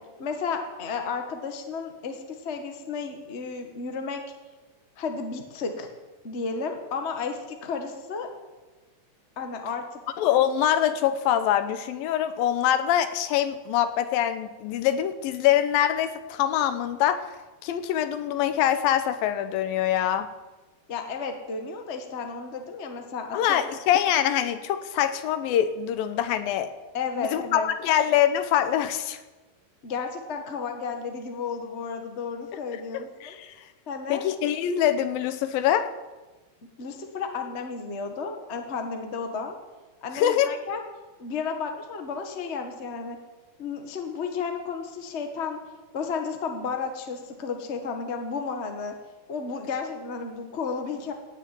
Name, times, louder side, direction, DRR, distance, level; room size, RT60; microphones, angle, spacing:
voice 1, 0.2-4.2 5.0-5.9 6.2-8.3 9.4-10.0 20.9-23.6 26.9-27.7 29.8-33.3 33.9-34.2 36.8-39.5 40.0-40.8 41.2-43.2 43.6-45.6 45.9-48.9 49.3-51.1, left 5 dB, 50° left, 4 dB, 0.8 m, -33 dB
voice 2, 10.2-17.3 17.6-20.3 23.3-26.7 27.2-29.2 33.2-33.5 34.1-35.9 40.2-40.5, left 10 dB, 90° left, 11 dB, 2.6 m, -24 dB
17.0 x 6.7 x 9.2 m, 1.2 s
omnidirectional pair, 4.0 m